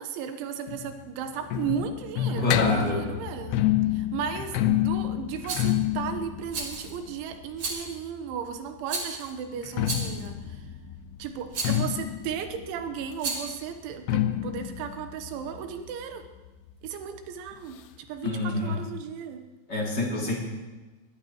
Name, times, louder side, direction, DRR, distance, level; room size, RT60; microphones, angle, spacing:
voice 1, 0.0-3.7 3.9-10.7 11.2-16.3 16.8-19.4, right 8 dB, 90° right, 7 dB, 3.5 m, -35 dB
sound 1, 0.7-8.4 9.5-16.9 17.2-17.3 17.5-17.6 18.3-18.4, left 13 dB, 80° left, 2.5 m, -29 dB
voice 2, 2.4-3.0 18.2-18.7 19.7-20.3, left 2 dB, 25° left, -3 dB, 2.7 m, -27 dB
Rattle, 5.5-5.7 6.5-7.0 7.6-8.0 8.9-9.3 9.8-10.3 11.5-11.9 13.1-13.6, right 3 dB, 45° right, 2.0 m, -33 dB
21.5 x 16.0 x 3.1 m, 1.2 s
omnidirectional pair, 5.3 m